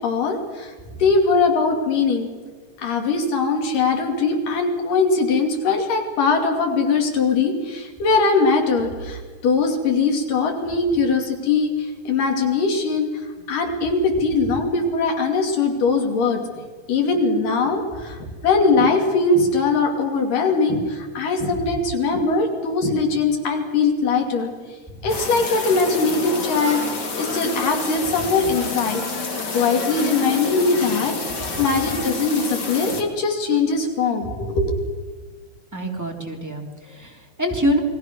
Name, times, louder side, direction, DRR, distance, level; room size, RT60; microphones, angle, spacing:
voice 1, 0.0-0.7 1.0-2.3 2.8-16.6 16.9-24.5 25.0-29.0 29.5-34.8, left 4 dB, 90° left, 3 dB, 4.4 m, -21 dB
sound 1, 25.1-33.0, left 3 dB, 35° left, 2.7 m, -28 dB
voice 2, 35.7-37.8, equal, 5° right, 0 dB, 2.7 m, -25 dB
28.5 x 20.5 x 6.3 m, 1.4 s
omnidirectional pair, 3.7 m